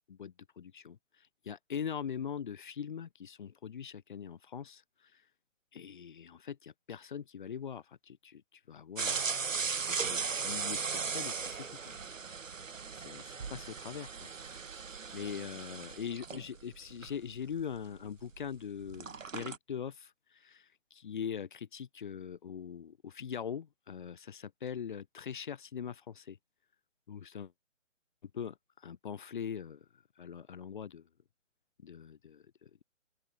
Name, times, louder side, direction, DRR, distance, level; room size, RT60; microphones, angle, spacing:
voice 1, 0.1-5.2 5.7-9.3 9.9-12.0 12.9-14.3 15.1-26.4 27.1-27.5 28.3-31.0 31.8-32.8, left 7 dB, 40° left, 6.2 m, -42 dB
sound 1, 9.0-18.6 18.8-19.6, right 5 dB, 85° right, 2.5 m, -37 dB
open air
hypercardioid pair, 175°, 38 cm